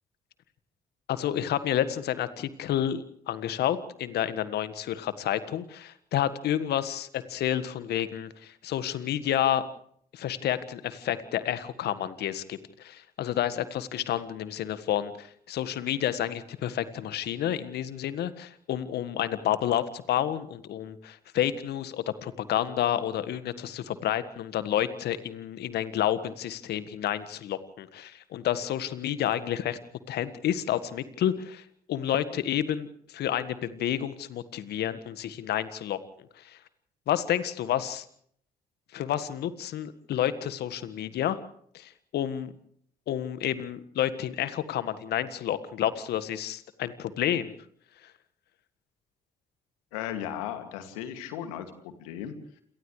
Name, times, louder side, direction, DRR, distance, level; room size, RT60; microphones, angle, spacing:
voice 1, 1.1-9.6 10.1-29.8 30.1-31.6 31.9-36.0 36.4-36.6 37.1-38.0 38.9-41.4 41.7-42.5 43.1-47.5, left 11 dB, 65° left, 14 dB, 1.7 m, -30 dB
voice 2, 49.9-52.4, left 10 dB, 80° left, 8 dB, 2.4 m, -36 dB
28.5 x 28.0 x 3.3 m, 0.64 s
hypercardioid pair, 45°, 18 cm